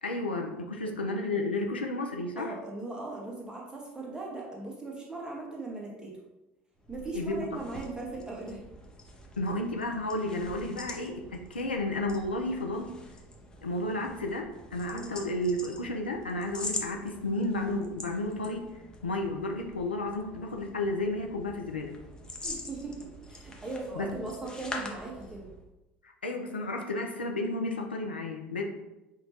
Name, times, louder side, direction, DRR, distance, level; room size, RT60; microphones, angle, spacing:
voice 1, 0.0-2.5 7.1-7.4 9.4-12.9 13.6-18.7 19.0-22.0 24.0-24.1 26.2-28.6, left 2 dB, 80° left, 2 dB, 0.4 m, -32 dB
voice 2, 2.3-6.1 6.9-8.6 14.9-15.1 22.4-25.5, right 2 dB, 10° right, -2 dB, 1.2 m, -39 dB
sound 1, 6.8-25.7, left 2 dB, 15° left, 0.6 m, -44 dB
5.7 x 2.2 x 2.8 m, 0.97 s
figure-of-eight pair, 65°, 6 cm